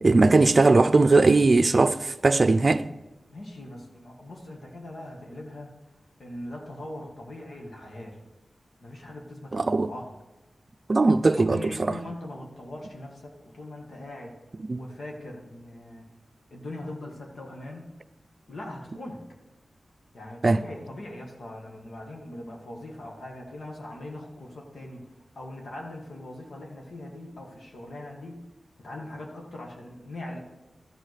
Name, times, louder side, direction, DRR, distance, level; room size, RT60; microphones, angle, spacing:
voice 1, 0.0-2.9 9.5-9.9 10.9-11.9 14.7-14.8 20.4-20.6, right 3 dB, 45° right, 0.5 m, -19 dB
voice 2, 3.3-5.7 6.2-8.2 8.8-10.1 11.1-14.4 14.7-16.0 16.5-17.9 18.5-19.2 20.1-25.1 25.3-28.4 28.8-30.4, left 1 dB, 70° left, 1.8 m, -41 dB
13.0 x 4.6 x 6.6 m
wide cardioid pair, 90°, 0 cm